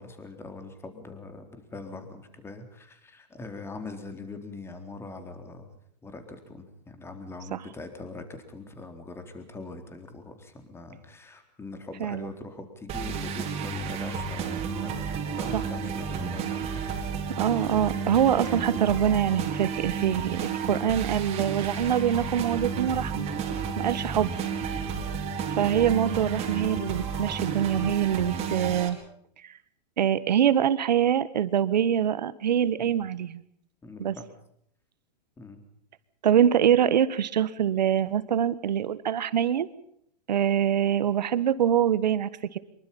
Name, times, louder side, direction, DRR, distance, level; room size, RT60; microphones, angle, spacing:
voice 1, 0.0-5.7 6.0-17.1 23.4-23.8 24.7-25.0 32.8-32.9 33.8-34.3 35.4-35.6, left 3 dB, 10° left, 7 dB, 3.9 m, -42 dB
sound 1, 12.9-28.9, right 6 dB, 30° right, 4.5 m, -32 dB
voice 2, 17.4-23.3 23.8-24.3 25.6-29.0 30.0-33.4 34.0-34.2 36.2-39.7 40.3-42.6, right 9 dB, 80° right, 16 dB, 1.6 m, -24 dB
25.0 x 23.0 x 5.5 m, 0.69 s
hypercardioid pair, 130°, 21 cm